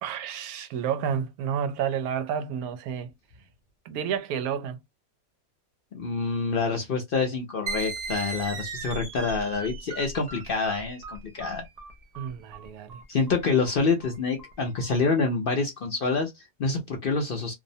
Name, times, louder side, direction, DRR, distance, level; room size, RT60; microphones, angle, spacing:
voice 1, 0.0-3.1 3.9-4.8 12.2-13.0, right 8 dB, 90° right, 1.0 m, -30 dB
voice 2, 5.9-11.6 13.1-17.5, left 4 dB, 55° left, 0.6 m, -27 dB
sound 1, 7.7-14.9, right 3 dB, 55° right, 0.4 m, -38 dB
2.7 x 2.0 x 2.6 m
omnidirectional pair, 1.5 m